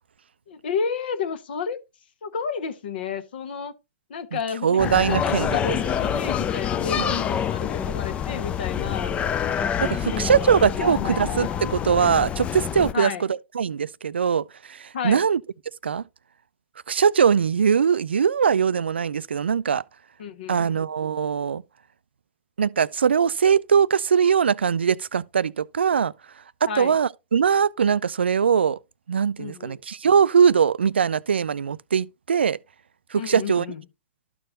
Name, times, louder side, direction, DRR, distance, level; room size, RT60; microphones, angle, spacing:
voice 1, 0.5-1.8 2.2-3.7 4.1-9.1 10.1-10.2 10.8-11.7 12.9-13.2 14.9-15.2 20.2-20.8 26.7-27.0 29.4-29.8 33.1-33.8, left 6 dB, 55° left, 1.3 m, -31 dB
voice 2, 4.6-5.8 7.0-7.2 9.8-15.4 15.8-16.0 16.9-19.8 20.5-21.6 22.6-26.1 26.6-28.8 29.1-32.6 33.1-33.7, right 7 dB, 70° right, 0.4 m, -21 dB
sound 1, 4.8-12.9, left 8 dB, 20° left, 0.5 m, -27 dB
12.5 x 4.6 x 2.9 m
figure-of-eight pair, 105°, 6 cm